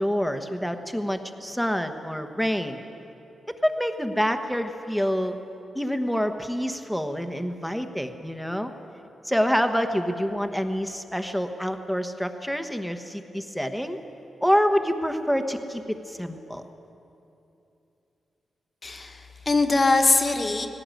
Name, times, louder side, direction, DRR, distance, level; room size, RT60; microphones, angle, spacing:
voice 1, 0.0-2.8 3.5-5.4 5.7-8.7 9.2-14.0 14.4-16.6, equal, ahead, 7 dB, 1.2 m, -27 dB
voice 2, 18.8-20.7, left 3 dB, 30° left, 5 dB, 1.5 m, -22 dB
19.5 x 17.5 x 9.1 m, 2.8 s
wide cardioid pair, 140°, 0 cm